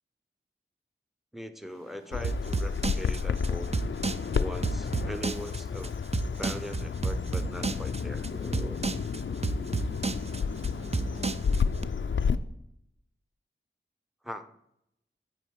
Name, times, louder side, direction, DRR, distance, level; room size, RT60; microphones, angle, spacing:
voice 1, 1.3-3.8 4.4-6.0 6.4-8.8 14.2-14.5, equal, ahead, 10 dB, 0.7 m, -40 dB
sound 1, 1.7-11.3, equal, 70° right, 2.0 m, -51 dB
Bird vocalization bird call bird song, 2.1-12.4, left 6 dB, 65° left, 0.4 m, -31 dB
sound 2, 2.2-11.8, right 3 dB, 30° right, 0.4 m, -31 dB
8.8 x 4.4 x 4.7 m, 0.79 s
wide cardioid pair, 45°, 21 cm